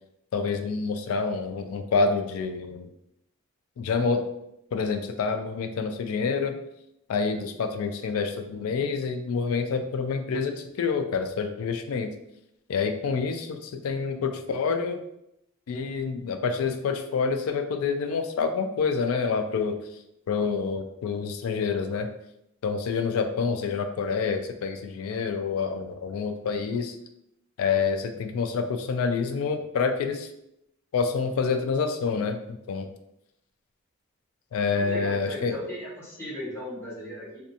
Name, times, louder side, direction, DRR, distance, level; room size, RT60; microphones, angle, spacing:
voice 1, 0.3-2.9 3.8-4.2 4.7-6.6 7.1-12.1 12.7-15.0 15.7-19.8 20.3-22.1 22.6-27.0 27.6-30.3 30.9-32.9 34.5-35.6, left 5 dB, 85° left, 7 dB, 0.3 m, -27 dB
voice 2, 34.8-37.4, equal, 10° left, -9 dB, 0.9 m, -37 dB
2.5 x 2.3 x 2.7 m, 0.81 s
head